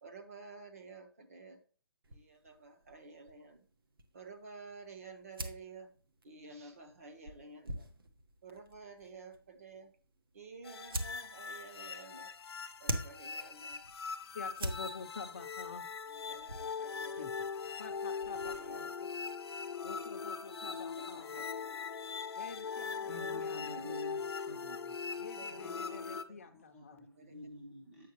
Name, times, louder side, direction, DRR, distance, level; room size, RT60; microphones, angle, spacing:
voice 1, 0.0-1.6 2.1-3.7 4.1-5.9 6.2-7.9 8.4-9.9 10.3-12.3 12.8-13.8 16.1-17.5 18.2-18.9 19.7-19.8 20.6-21.8 22.9-23.4 23.6-23.9 25.1-26.4 26.9-27.4, right 4 dB, 35° right, 6 dB, 1.0 m, -52 dB
sound 1, 2.0-18.9, right 1 dB, 65° right, 1.2 m, -46 dB
sound 2, 10.6-26.2, left 5 dB, 85° left, 0.7 m, -41 dB
voice 2, 14.2-15.9 17.2-17.3 17.8-18.9 19.8-21.4 22.4-24.1 25.2-27.0, left 5 dB, 35° left, 5 dB, 0.6 m, -48 dB
voice 3, 23.1-25.2 25.5-28.1, left 1 dB, 5° right, -3 dB, 0.6 m, -50 dB
8.3 x 5.9 x 3.0 m, 0.40 s
hypercardioid pair, 175°, 13 cm